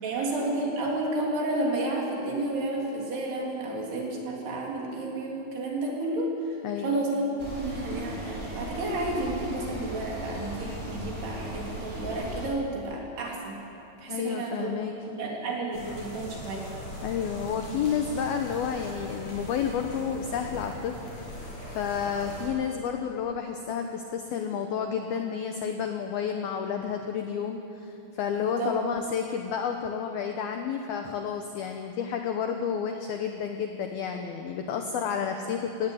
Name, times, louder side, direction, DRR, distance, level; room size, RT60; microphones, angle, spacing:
voice 1, 0.0-6.6 6.8-13.6 14.0-14.7 15.2-16.7 28.4-28.8, right 2 dB, 55° right, -2 dB, 4.9 m, -31 dB
voice 2, 6.6-7.1 14.1-15.0 17.0-21.0 21.7-35.9, left 7 dB, 85° left, 5 dB, 2.2 m, -30 dB
sound 1, 7.4-12.5, right 1 dB, 15° right, 4.1 m, -37 dB
sound 2, 15.7-22.5, equal, 40° left, 7.9 m, -40 dB
18.0 x 17.5 x 9.3 m, 2.8 s
omnidirectional pair, 5.7 m